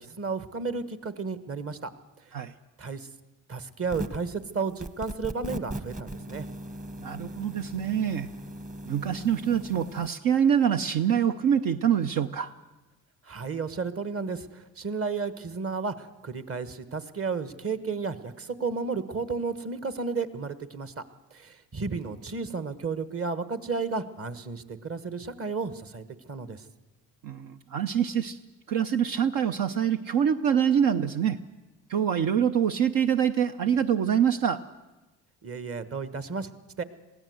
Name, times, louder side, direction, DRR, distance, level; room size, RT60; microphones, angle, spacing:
voice 1, 0.0-1.9 2.8-3.1 3.5-6.5 13.3-21.0 21.3-26.6 35.4-36.5 36.8-36.9, right 4 dB, 40° right, 13 dB, 1.4 m, -33 dB
sound 1, 3.8-4.3 4.8-10.1, right 1 dB, 20° right, 1.2 m, -38 dB
voice 2, 7.0-8.3 8.9-12.5 27.2-28.4 28.7-31.4 31.9-34.6, right 8 dB, 70° right, 8 dB, 0.8 m, -25 dB
22.0 x 16.0 x 7.9 m, 1.1 s
supercardioid pair, 70°, 34 cm